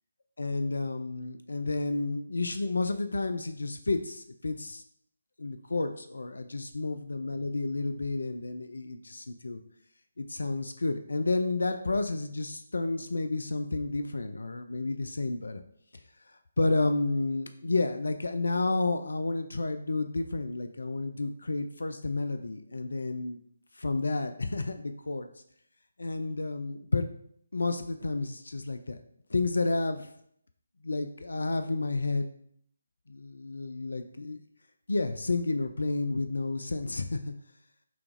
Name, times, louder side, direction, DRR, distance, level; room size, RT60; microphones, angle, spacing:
voice 1, 0.4-4.8 5.4-9.6 10.2-15.6 16.6-23.4 23.7-25.3 26.0-27.1 27.5-29.0 29.3-30.1 30.8-32.3 33.1-34.4 34.9-37.3, left 3 dB, 65° left, 8 dB, 0.3 m, -31 dB
5.7 x 2.4 x 2.5 m, 0.68 s
figure-of-eight pair, 145°, 0 cm